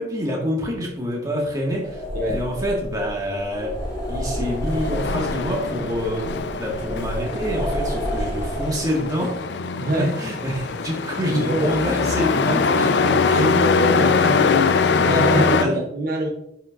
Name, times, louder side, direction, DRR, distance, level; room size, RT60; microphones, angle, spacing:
voice 1, 0.0-3.8 4.1-9.4 9.9-13.5 14.2-14.5 15.0-15.7, equal, 20° right, -1 dB, 1.7 m, -27 dB
sound 1, 1.7-9.3, equal, 20° left, 2.6 m, -30 dB
Truck, 4.5-15.6, left 5 dB, 80° left, 0.5 m, -22 dB
voice 2, 9.8-10.2 11.2-11.7 13.3-16.3, right 1 dB, 55° right, 1 dB, 0.9 m, -24 dB
9.5 x 5.7 x 2.5 m, 0.77 s
head